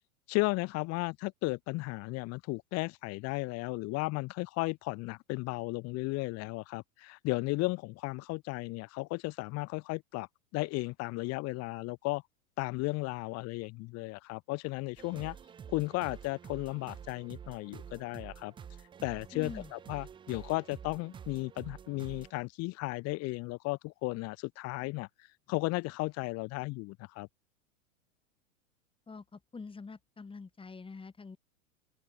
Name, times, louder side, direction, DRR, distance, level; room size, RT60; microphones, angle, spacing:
voice 1, 0.3-10.3 10.5-12.2 12.6-15.4 15.7-18.5 19.0-25.1 25.5-27.3, left 23 dB, 35° left, 1.1 m, -35 dB
sound 1, 15.0-22.3, right 8 dB, 10° right, 0.5 m, -48 dB
voice 2, 19.3-19.7 29.1-31.4, left 4 dB, 10° left, 4.5 m, -45 dB
hypercardioid pair, 105°, 42 cm